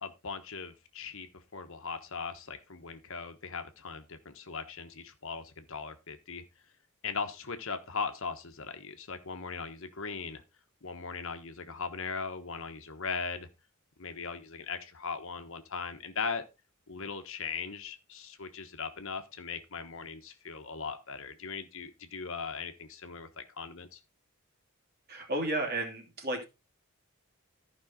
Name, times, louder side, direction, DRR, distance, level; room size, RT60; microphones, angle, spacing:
voice 1, 0.0-6.4 7.0-10.4 10.8-13.5 14.0-16.4 16.9-24.0, left 5 dB, 60° left, 7 dB, 1.2 m, -39 dB
voice 2, 25.1-26.4, right 1 dB, 45° right, 1 dB, 2.9 m, -32 dB
13.5 x 5.5 x 3.7 m, 0.26 s
head